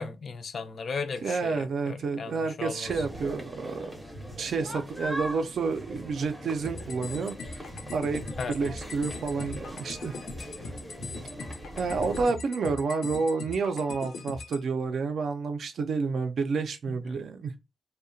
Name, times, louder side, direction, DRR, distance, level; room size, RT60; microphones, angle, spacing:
voice 1, 0.0-2.9 8.4-8.5 17.1-17.2, left 5 dB, 45° left, 0.3 m, -36 dB
voice 2, 1.2-4.0 4.4-7.6 7.9-8.2 8.5-10.2 11.8-17.5, right 4 dB, 55° right, 0.4 m, -29 dB
sound 1, 2.8-12.3, equal, 5° right, 0.5 m, -40 dB
sound 2, 6.6-14.6, left 3 dB, 90° left, 0.6 m, -41 dB
2.7 x 2.1 x 2.6 m
wide cardioid pair, 175°, 0 cm